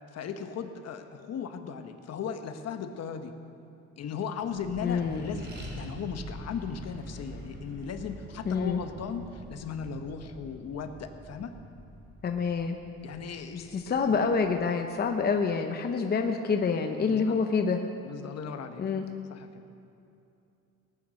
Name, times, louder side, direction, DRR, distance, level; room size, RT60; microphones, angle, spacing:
voice 1, 0.1-3.3 4.0-11.6 13.0-13.9 16.2-16.3 17.0-17.4 18.0-18.8 19.3-19.6, left 6 dB, 55° left, 7 dB, 1.1 m, -37 dB
Accelerating revving vroom, 4.4-15.3, equal, 35° right, 3.2 m, -45 dB
voice 2, 4.8-5.3 8.5-8.8 12.2-12.8 13.5-17.8 18.8-19.0, left 5 dB, 30° left, 5 dB, 0.8 m, -27 dB
18.5 x 9.4 x 6.3 m, 2.7 s
cardioid pair, 125°, 31 cm